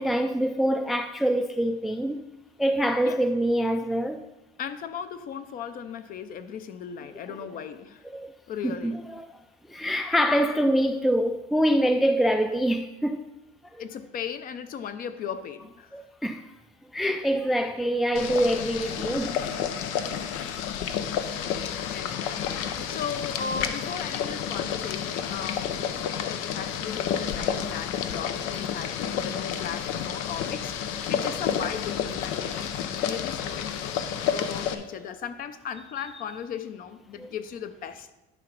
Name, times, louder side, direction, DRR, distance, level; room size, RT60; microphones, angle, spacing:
voice 1, 0.0-2.2 2.6-4.2 8.1-8.3 8.6-9.3 9.7-13.2 15.9-16.4 16.9-19.4 22.8-22.9 37.2-37.3, equal, ahead, 0.3 m, -25 dB
voice 2, 4.6-8.0 8.5-9.0 13.8-16.0 21.6-25.9 26.2-34.0 34.3-38.1, left 7 dB, 45° left, 0.7 m, -37 dB
Boiling, 18.1-34.7, left 8 dB, 85° left, 0.7 m, -30 dB
11.0 x 4.8 x 5.3 m
cardioid pair, 135°, 20 cm